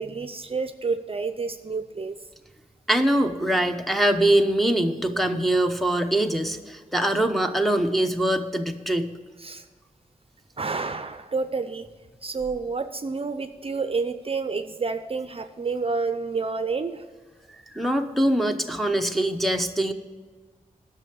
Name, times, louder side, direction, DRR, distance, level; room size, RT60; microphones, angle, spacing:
voice 1, 0.0-2.2 9.4-9.6 10.6-11.9 12.2-17.0, right 4 dB, 40° right, 10 dB, 0.5 m, -29 dB
voice 2, 2.9-9.1 17.7-19.9, right 1 dB, ahead, 4 dB, 0.8 m, -23 dB
11.0 x 6.6 x 6.9 m, 1.4 s
wide cardioid pair, 100°, 15 cm